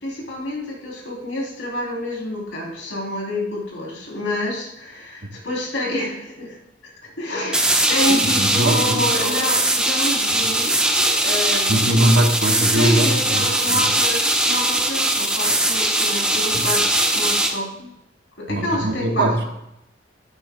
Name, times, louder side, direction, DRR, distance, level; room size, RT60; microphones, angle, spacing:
voice 1, 0.0-6.6 7.0-12.1 12.6-16.8 17.1-17.9 18.4-19.5, left 1 dB, 80° left, -2 dB, 3.1 m, -28 dB
sound 1, 7.5-17.5, right 1 dB, 5° right, 0.9 m, -20 dB
voice 2, 8.1-9.0 11.7-13.8 16.5-16.7 18.5-19.5, right 1 dB, 65° right, 3 dB, 1.3 m, -21 dB
11.5 x 10.5 x 2.2 m, 0.85 s
head